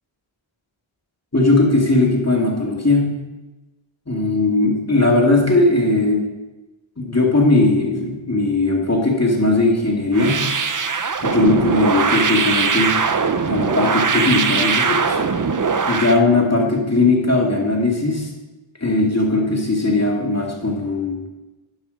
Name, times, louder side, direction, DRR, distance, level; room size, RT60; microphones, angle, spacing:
voice 1, 1.3-3.1 4.1-6.2 7.0-10.4 11.2-13.0 13.5-15.2 15.9-18.3 18.8-21.2, left 2 dB, 30° left, -1 dB, 2.3 m, -18 dB
sound 1, 10.1-16.2, right 5 dB, 40° right, 0.7 m, -20 dB
11.5 x 5.5 x 5.2 m, 1.1 s
wide cardioid pair, 40°, 48 cm